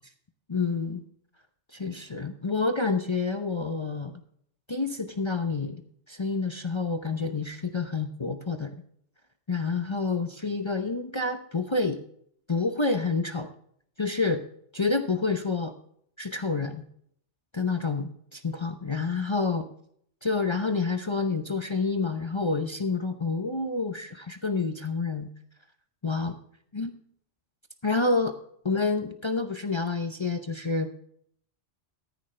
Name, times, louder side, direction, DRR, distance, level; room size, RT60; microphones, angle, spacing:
voice 1, 0.5-1.0 1.7-4.1 4.7-5.8 6.1-8.7 9.5-12.0 12.5-13.5 14.0-14.4 14.7-15.7 16.2-16.8 17.5-19.7 20.2-25.3 26.0-26.3 26.7-26.9 27.8-28.3 28.6-30.9, left 3 dB, 30° left, 7 dB, 0.7 m, -28 dB
14.5 x 10.0 x 3.3 m, 0.66 s
omnidirectional pair, 1.2 m